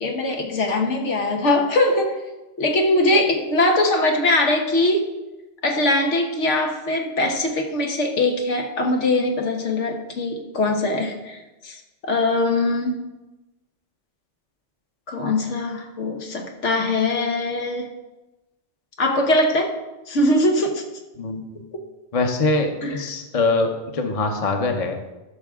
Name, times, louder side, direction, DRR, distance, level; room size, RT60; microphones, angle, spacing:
voice 1, 0.0-2.2 2.6-5.0 5.6-11.4 11.6-13.1 15.1-17.9 19.0-19.7 20.1-20.8 22.8-23.0, left 2 dB, 85° left, 2 dB, 1.5 m, -21 dB
voice 2, 21.2-21.6 22.1-25.0, left 3 dB, 35° left, 5 dB, 0.9 m, -23 dB
13.0 x 5.8 x 3.7 m, 1.0 s
omnidirectional pair, 1.2 m